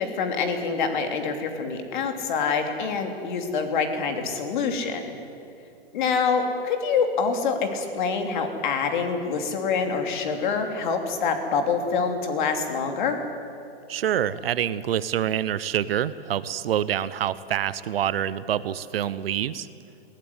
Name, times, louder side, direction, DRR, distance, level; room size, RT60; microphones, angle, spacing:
voice 1, 0.0-5.0 5.9-13.2, left 5 dB, 50° left, 5 dB, 3.1 m, -26 dB
voice 2, 13.9-19.7, right 10 dB, 65° right, 16 dB, 1.0 m, -26 dB
21.5 x 16.5 x 9.9 m, 2.6 s
hypercardioid pair, 160°, 31 cm